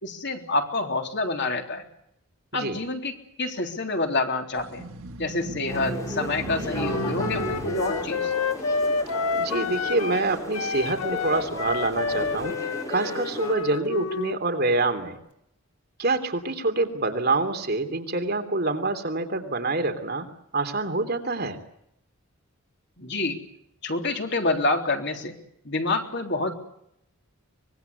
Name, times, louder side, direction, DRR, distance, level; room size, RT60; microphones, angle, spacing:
voice 1, 0.0-1.8 2.5-4.9 5.2-8.3 23.0-23.4 23.8-25.3 25.7-26.5, left 2 dB, 50° left, 4 dB, 3.6 m, -27 dB
sound 1, 4.5-10.1 10.6-12.5, right 1 dB, 75° right, 1.7 m, -37 dB
sound 2, 5.7-13.5, equal, 15° left, 6.9 m, -36 dB
Wind instrument woodwind instrument, 6.7-10.3 10.5-14.4, left 4 dB, 90° left, 1.3 m, -29 dB
voice 2, 9.4-12.5 12.9-15.2 16.0-20.3 20.5-21.6, right 2 dB, 45° right, 6 dB, 3.2 m, -26 dB
24.5 x 22.0 x 8.2 m, 0.76 s
head